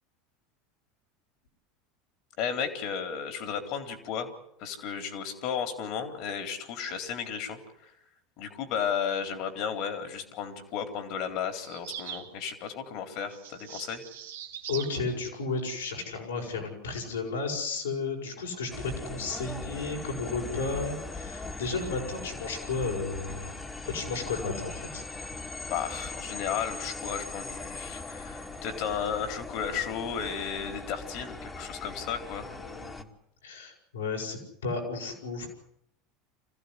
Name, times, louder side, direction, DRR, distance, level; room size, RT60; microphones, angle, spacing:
voice 1, 2.4-4.3 4.6-7.9 8.4-14.0 25.7-32.5, left 7 dB, 60° left, 7 dB, 3.9 m, -34 dB
sound 1, 11.6-12.3 13.3-15.0, right 9 dB, 80° right, 2.0 m, -41 dB
voice 2, 14.7-23.6 23.9-25.0 32.6-33.1 33.4-35.5, left 4 dB, 85° left, 0 dB, 6.5 m, -33 dB
sound 2, 18.7-33.0, left 3 dB, 20° left, 2.4 m, -40 dB
25.5 x 15.5 x 9.9 m, 0.79 s
hypercardioid pair, 80°, 0 cm